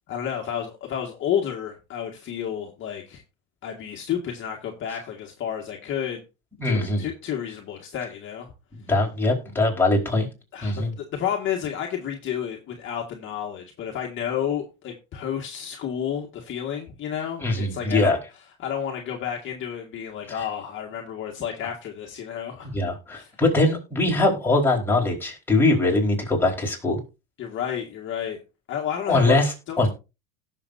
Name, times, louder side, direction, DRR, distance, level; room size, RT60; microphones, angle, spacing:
voice 1, 0.1-3.2 3.6-6.2 6.6-8.5 10.5-18.2 18.6-22.8 23.1-23.3 27.4-28.4 28.7-29.4 29.7-29.9, left 9 dB, 35° left, 1 dB, 1.8 m, -31 dB
voice 2, 6.6-7.1 8.7-10.3 10.6-10.9 17.4-18.2 22.7-27.0 29.1-29.9, left 2 dB, 5° left, -3 dB, 4.3 m, -22 dB
17.5 x 6.8 x 2.7 m, 0.29 s
supercardioid pair, 140°, 35 cm